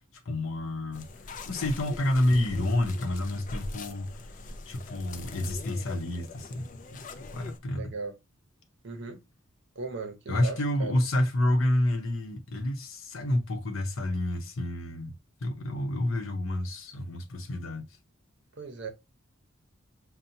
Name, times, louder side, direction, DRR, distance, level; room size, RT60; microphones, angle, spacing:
voice 1, 0.3-4.1 4.7-6.7 7.3-7.9 10.3-15.1 15.4-17.9, left 1 dB, 75° left, 0.8 m, -29 dB
sound 1, 0.9-7.6, left 3 dB, 40° left, 0.4 m, -42 dB
voice 2, 7.8-8.1 8.8-9.2 9.8-10.9 18.6-18.9, right 4 dB, 60° right, 0.7 m, -37 dB
5.7 x 2.2 x 2.6 m
head